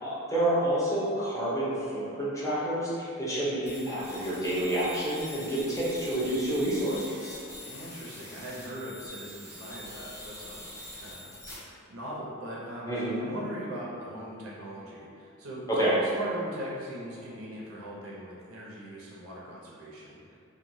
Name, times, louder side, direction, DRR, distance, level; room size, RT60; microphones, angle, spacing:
voice 1, 0.0-7.4 12.8-13.2 15.7-16.0, right 1 dB, 15° left, -9 dB, 0.6 m, -29 dB
sound 1, 3.7-11.5, left 1 dB, 50° left, 0.9 m, -44 dB
voice 2, 7.6-15.6 16.0-20.4, equal, 70° right, -5 dB, 0.6 m, -40 dB
2.9 x 2.2 x 2.6 m, 2.4 s
head